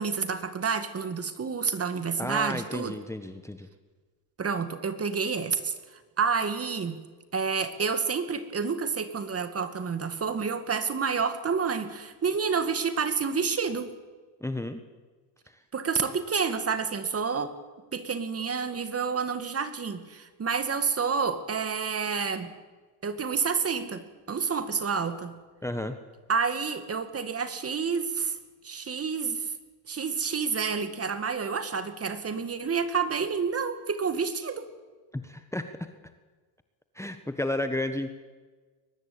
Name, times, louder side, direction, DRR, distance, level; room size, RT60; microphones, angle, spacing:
voice 1, 0.0-3.0 4.4-5.7 6.2-7.0 7.3-14.0 15.7-17.5 17.9-22.5 23.0-25.3 26.3-28.4 28.6-29.4 29.9-34.6, right 5 dB, 30° right, 10 dB, 2.2 m, -29 dB
voice 2, 2.2-3.7 14.4-14.8 15.5-15.6 25.6-26.0 35.1-35.7 36.9-38.1, left 1 dB, 5° left, 8 dB, 1.4 m, -32 dB
23.0 x 19.5 x 8.8 m, 1.4 s
supercardioid pair, 100°, 48 cm